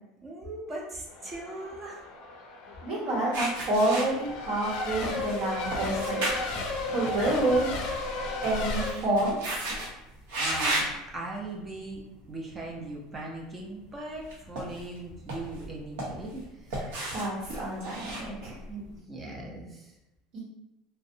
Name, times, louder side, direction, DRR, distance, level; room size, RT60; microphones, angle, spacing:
voice 1, 0.2-2.0 10.4-10.9 11.1-12.0 12.3-16.9 18.7-19.9, right 2 dB, 20° right, -2 dB, 0.5 m, -39 dB
Race car auto racing / Accelerating revving vroom / Mechanisms, 1.1-8.9, left 2 dB, 60° left, 0.4 m, -35 dB
voice 2, 2.8-6.2 6.9-7.7 8.4-9.6 16.8-16.9 17.1-18.6 20.3-20.4, right 1 dB, 60° right, -6 dB, 1.1 m, -28 dB
sound 1, 3.3-4.7 5.0-7.6 7.9-9.9 10.3-11.0 11.6-11.9 14.2-15.0 15.3-16.4 16.7-18.9, right 1 dB, 80° right, 0.8 m, -34 dB
2.6 x 2.1 x 2.6 m, 0.93 s
supercardioid pair, 130°, 0 cm